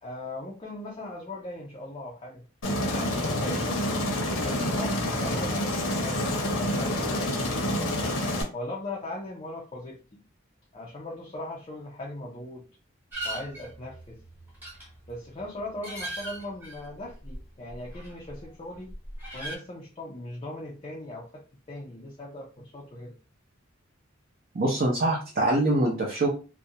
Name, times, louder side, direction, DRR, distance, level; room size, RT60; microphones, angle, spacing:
voice 1, 0.0-2.5 2.8-3.8 4.3-7.8 8.5-10.0 10.7-12.7 13.2-14.2 15.1-18.9 19.3-23.2, left 1 dB, 30° left, -2 dB, 0.4 m, -39 dB
Aircraft, 2.6-8.4, left 1 dB, 75° left, 0.7 m, -28 dB
sound 1, 13.1-18.5 18.8-19.6, right 1 dB, 10° right, 0.9 m, -39 dB
voice 2, 24.5-26.3, right 2 dB, 45° right, -2 dB, 0.6 m, -24 dB
2.4 x 2.1 x 2.7 m, 0.34 s
head